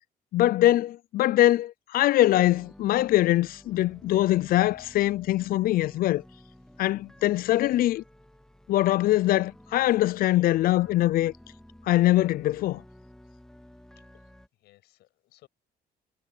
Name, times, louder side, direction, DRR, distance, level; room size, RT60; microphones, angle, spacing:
voice 1, 0.3-6.2 6.8-8.0 8.7-11.3 11.9-12.8, left 15 dB, 60° left, 0.4 m, -23 dB
sound 1, 2.4-14.5, left 1 dB, 5° left, 2.9 m, -52 dB
voice 2, 14.0-15.5, left 16 dB, 80° left, 7.1 m, -61 dB
cardioid pair, 110°, 17 cm